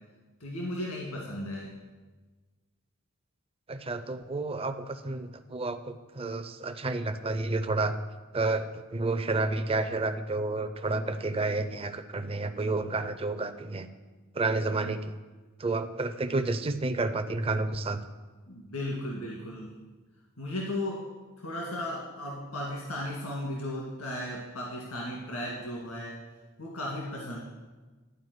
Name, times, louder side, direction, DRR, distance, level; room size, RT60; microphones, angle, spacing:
voice 1, 0.4-1.7 18.5-19.7 20.4-21.0 21.4-26.1 26.6-27.4, left 1 dB, 80° left, -3 dB, 1.8 m, -35 dB
voice 2, 3.7-7.9 8.3-13.9 14.3-15.1 15.6-18.0, right 3 dB, 25° right, 9 dB, 0.5 m, -30 dB
11.5 x 4.9 x 7.9 m, 1.3 s
head